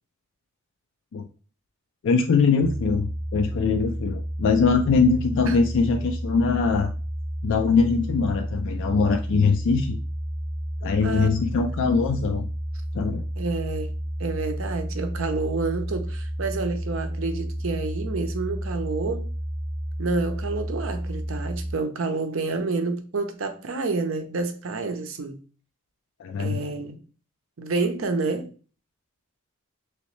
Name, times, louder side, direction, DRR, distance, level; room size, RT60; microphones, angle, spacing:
voice 1, 2.0-6.9 7.4-10.0 10.8-12.5 12.9-13.2 26.2-26.7, left 4 dB, 60° left, 0.3 m, -22 dB
sound 1, 2.6-21.7, equal, 25° right, 0.8 m, -31 dB
voice 2, 11.0-11.4 13.4-13.9 14.2-19.3 20.0-25.4 26.4-27.0 27.6-28.5, right 3 dB, 65° right, 0.6 m, -29 dB
3.1 x 3.0 x 3.1 m
head